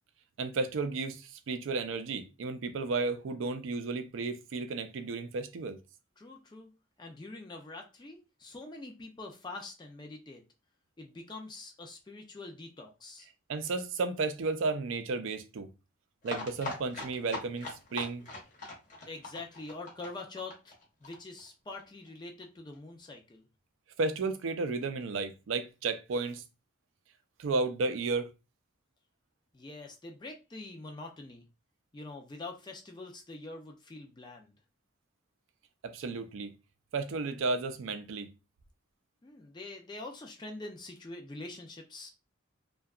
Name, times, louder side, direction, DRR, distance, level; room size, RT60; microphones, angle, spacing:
voice 1, 0.4-5.8 13.5-15.7 16.2-18.3 24.0-26.4 27.4-28.3 35.8-36.5 36.9-38.3, right 3 dB, 80° right, 0.4 m, -33 dB
voice 2, 6.2-6.7 7.0-10.4 11.0-13.3 19.1-20.7 21.0-23.5 29.5-31.4 31.9-34.5 39.2-42.1, left 2 dB, 20° left, 0.3 m, -45 dB
sound 1, 16.2-21.8 22.1-22.2 22.4-22.5 22.7-22.8, left 2 dB, 40° left, 0.8 m, -41 dB
2.7 x 2.2 x 2.3 m
head